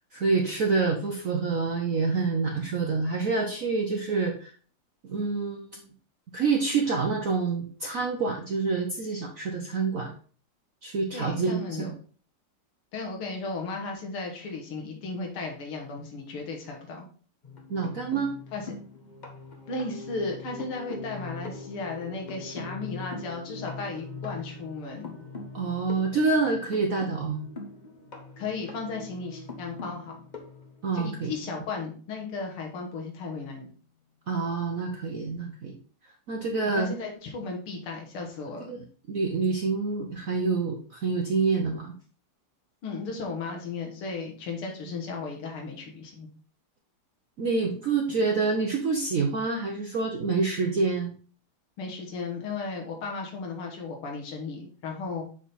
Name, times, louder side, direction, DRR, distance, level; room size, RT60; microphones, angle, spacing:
voice 1, 0.1-4.5 5.0-5.9 6.3-10.1 10.8-11.9 17.7-18.4 25.5-27.4 30.8-31.3 34.3-35.8 36.3-36.9 38.6-41.9 47.4-51.1, right 4 dB, 65° right, 2 dB, 0.8 m, -27 dB
voice 2, 11.1-11.9 12.9-17.1 18.5-18.7 19.7-25.2 28.4-30.2 30.9-33.7 36.7-38.8 42.8-46.3 51.8-55.2, left 4 dB, 80° left, 1 dB, 2.2 m, -35 dB
sound 1, 17.4-31.4 32.7-32.8 33.1-33.3, left 3 dB, 50° left, 0.5 m, -42 dB
7.2 x 3.6 x 4.1 m, 0.42 s
omnidirectional pair, 2.4 m